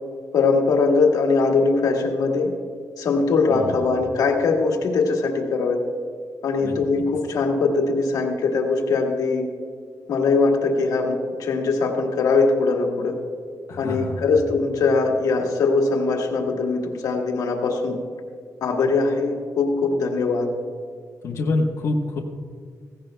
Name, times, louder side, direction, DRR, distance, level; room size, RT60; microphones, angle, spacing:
voice 1, 0.3-2.5 3.0-5.8 6.4-9.5 10.1-13.2 13.8-18.0 18.6-20.5, left 4 dB, 80° left, 1 dB, 1.5 m, -21 dB
voice 2, 13.7-14.2 21.2-22.2, left 2 dB, 60° left, -3 dB, 1.2 m, -26 dB
17.0 x 16.0 x 2.3 m, 2.1 s
wide cardioid pair, 160°, 6 cm